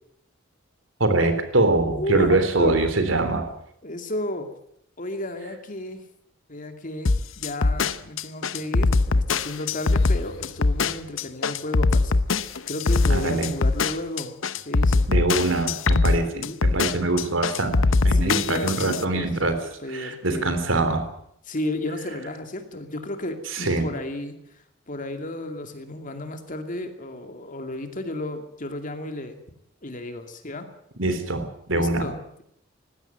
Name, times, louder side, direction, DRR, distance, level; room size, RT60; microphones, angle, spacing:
voice 1, 1.0-3.5 13.1-13.6 15.1-19.6 19.9-21.1 23.5-23.9 31.0-32.1, right 2 dB, 75° right, 9 dB, 3.5 m, -23 dB
voice 2, 1.8-2.8 3.8-4.5 5.0-6.0 6.5-14.3 14.7-15.1 16.3-16.6 18.1-19.3 19.8-20.5 21.5-24.4 24.9-29.4 29.8-30.7 31.7-32.4, left 1 dB, 45° left, 7 dB, 2.5 m, -33 dB
sound 1, 7.1-19.0, left 3 dB, 85° left, 0.9 m, -21 dB
19.0 x 16.0 x 9.1 m, 0.73 s
head